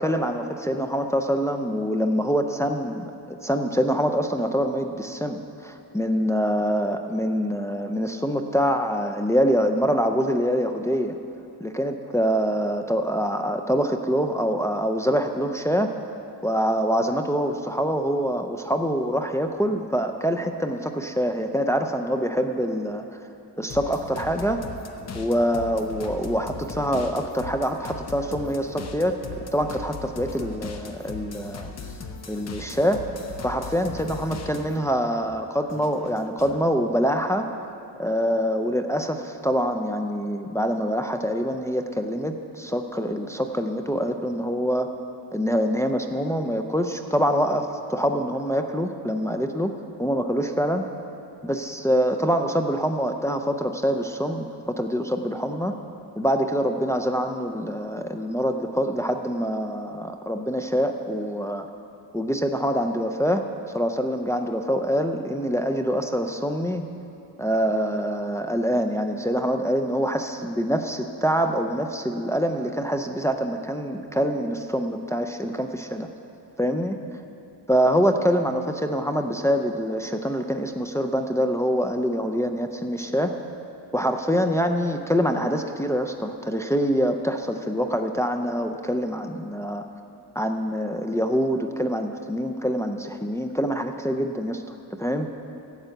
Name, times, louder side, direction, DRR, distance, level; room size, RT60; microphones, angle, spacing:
voice 1, 0.0-11.2 11.6-15.9 16.4-23.2 23.6-24.6 25.1-29.2 29.5-31.7 32.3-33.0 33.4-37.5 38.0-44.9 45.3-49.7 50.0-50.9 51.4-55.7 56.2-61.7 62.1-63.4 63.7-66.8 67.4-76.1 76.6-77.0 77.7-83.3 83.9-89.8 90.4-94.6 95.0-95.3, equal, 5° left, 5 dB, 0.4 m, -25 dB
sound 1, 23.7-34.9 35.2-36.6, left 4 dB, 35° left, 0.8 m, -38 dB
12.0 x 8.0 x 7.7 m, 2.7 s
cardioid pair, 145°, 45 cm